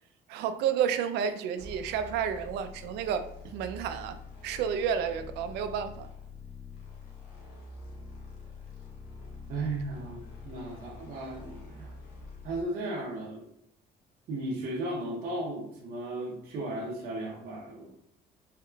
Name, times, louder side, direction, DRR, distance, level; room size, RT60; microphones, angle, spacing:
voice 1, 0.3-4.2 4.4-6.1, right 8 dB, 85° right, 9 dB, 0.4 m, -31 dB
sound 1, 1.6-12.6, left 3 dB, 80° left, 1.3 m, -46 dB
voice 2, 9.5-12.0 12.4-13.5 14.3-18.0, right 2 dB, 60° right, -2 dB, 0.8 m, -35 dB
3.6 x 3.5 x 2.3 m, 0.71 s
cardioid pair, 110°, 17 cm